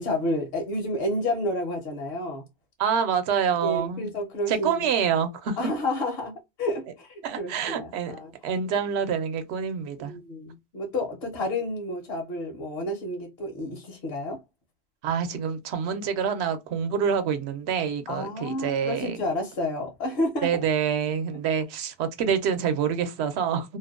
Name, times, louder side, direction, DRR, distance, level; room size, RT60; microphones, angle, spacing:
voice 1, 0.0-2.4 3.6-4.9 5.6-8.3 10.0-14.4 18.1-20.5, left 1 dB, 65° left, 0.9 m, -30 dB
voice 2, 2.8-4.1 4.5-5.6 7.2-8.2 8.4-10.2 15.0-19.2 20.4-23.8, right 7 dB, 70° right, 0.8 m, -26 dB
2.6 x 2.1 x 2.3 m
omnidirectional pair, 1.2 m